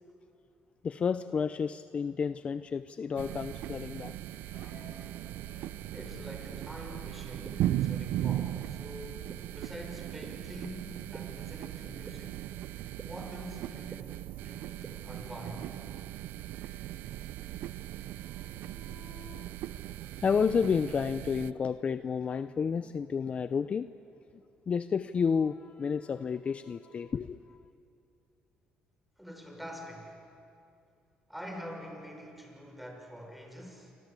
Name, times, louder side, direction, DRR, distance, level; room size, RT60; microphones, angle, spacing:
voice 1, 0.8-4.1 18.4-19.5 20.0-23.9 24.7-27.6, left 6 dB, 35° left, 12 dB, 0.6 m, -31 dB
sound 1, 1.7-1.8 2.4-2.6 3.3-3.5 3.8-5.1 5.4-5.8 6.0-6.3 6.5-6.7 7.1-7.4 7.7-8.0 8.4-8.7, left 4 dB, 75° left, 7.3 m, -58 dB
sound 2, 3.2-21.5, right 13 dB, 75° right, 0.7 m, -38 dB
voice 2, 5.9-12.4 13.1-15.8 29.2-30.2 31.3-33.9, equal, 5° right, 2 dB, 5.9 m, -45 dB
sound 3, 6.5-6.6 7.4-7.5 8.4-8.5 9.3-9.4 10.2-10.3 11.1-11.2 12.1-12.2 13.0-13.1 13.9-14.0 14.8-14.9, right 5 dB, 35° right, 2.1 m, -44 dB
28.0 x 25.5 x 8.3 m, 2.6 s
cardioid pair, 110°, 3 cm